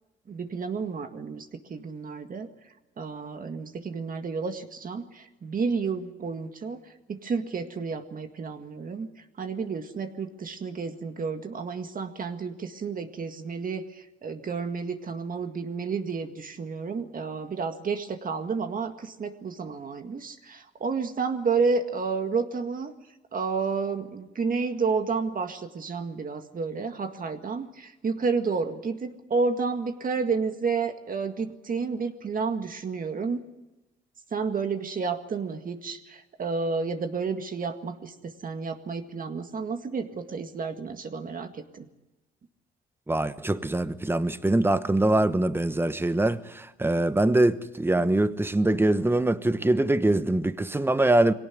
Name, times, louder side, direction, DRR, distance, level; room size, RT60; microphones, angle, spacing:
voice 1, 0.3-2.5 3.0-6.8 7.1-9.1 9.4-22.9 23.3-33.4 34.3-41.9, right 4 dB, 45° right, 1.9 m, -31 dB
voice 2, 43.1-51.3, right 2 dB, 10° right, 1.1 m, -23 dB
22.0 x 18.0 x 9.4 m
cardioid pair, 90°, 20 cm